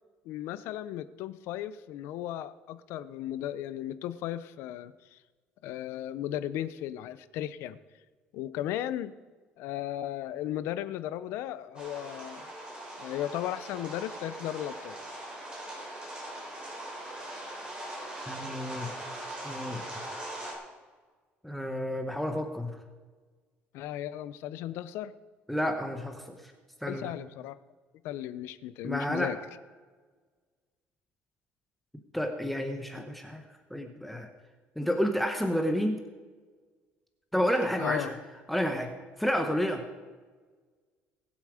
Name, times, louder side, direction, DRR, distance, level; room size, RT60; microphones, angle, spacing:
voice 1, 0.2-5.2 5.6-7.8 8.3-9.1 9.6-12.5 13.0-15.0 23.7-25.1 26.8-27.6 28.0-29.4 37.8-38.1, left 12 dB, 80° left, 14 dB, 0.7 m, -35 dB
sound 1, 11.7-20.5, right 1 dB, 25° right, 3.9 m, -41 dB
voice 2, 18.3-18.9 19.4-19.8 21.4-22.8 25.5-26.4 26.8-27.1 28.8-29.3 32.1-33.4 33.7-34.3 34.8-36.0 37.3-38.1 38.5-38.9 39.2-39.8, equal, ahead, 4 dB, 0.9 m, -30 dB
20.5 x 7.2 x 5.0 m, 1.4 s
cardioid pair, 155°, 4 cm